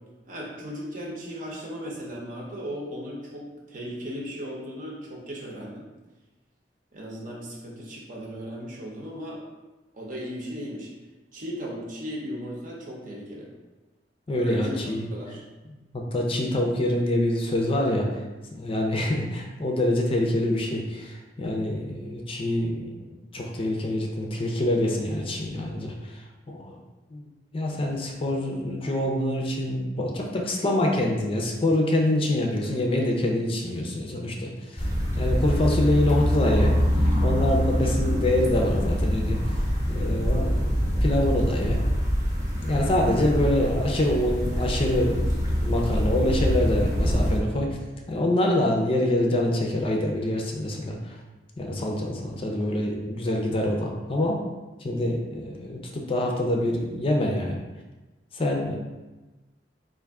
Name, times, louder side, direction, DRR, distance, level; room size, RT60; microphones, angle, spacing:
voice 1, 0.3-5.8 6.9-9.4 9.9-10.9 11.3-13.5 14.4-14.8 15.1-15.4, equal, 50° right, -2 dB, 0.8 m, -36 dB
voice 2, 14.3-15.1 15.7-18.2 18.5-26.8 27.1-34.9 35.2-36.7 37.0-41.8 42.6-45.2 45.6-47.8 48.1-51.2 51.6-54.4 54.8-57.6 58.3-58.8, left 1 dB, 30° left, 0 dB, 0.5 m, -26 dB
sound 1, 34.8-47.4, equal, 20° right, 0.9 m, -25 dB
3.6 x 2.5 x 3.5 m, 1.1 s
head